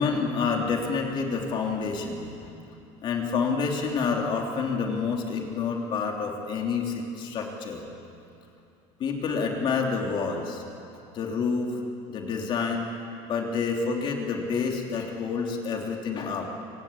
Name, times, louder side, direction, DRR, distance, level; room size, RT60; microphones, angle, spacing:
voice 1, 0.0-2.3 3.0-7.8 9.0-10.6 11.1-11.8 12.1-12.9 13.2-16.5, left 5 dB, 40° left, 1 dB, 3.4 m, -28 dB
26.0 x 23.5 x 8.9 m, 2.7 s
cardioid pair, 170°, 14 cm